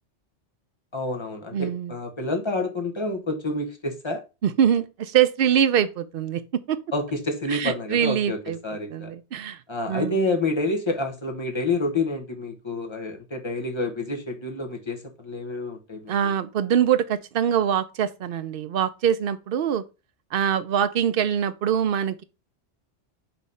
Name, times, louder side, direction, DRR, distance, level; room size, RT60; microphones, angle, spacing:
voice 1, 0.9-4.2 6.9-9.1 9.7-16.1, left 2 dB, 25° left, 1.2 m, -28 dB
voice 2, 1.5-1.9 4.4-6.8 7.5-8.6 8.9-9.6 9.9-10.2 16.1-19.8 20.3-22.2, right 9 dB, 60° right, 0.8 m, -23 dB
5.7 x 3.1 x 5.4 m
omnidirectional pair, 1.2 m